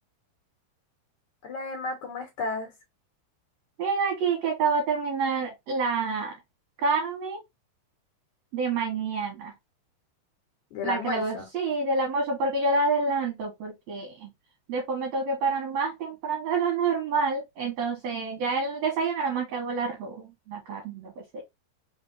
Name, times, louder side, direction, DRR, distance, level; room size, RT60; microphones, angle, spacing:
voice 1, 1.4-2.7 10.7-11.5 18.2-18.3, left 3 dB, 60° left, 2.7 m, -33 dB
voice 2, 3.8-6.3 6.8-7.4 8.5-9.5 10.8-14.3 14.7-21.4, right 4 dB, 60° right, 2.2 m, -28 dB
5.3 x 3.4 x 2.7 m
omnidirectional pair, 4.1 m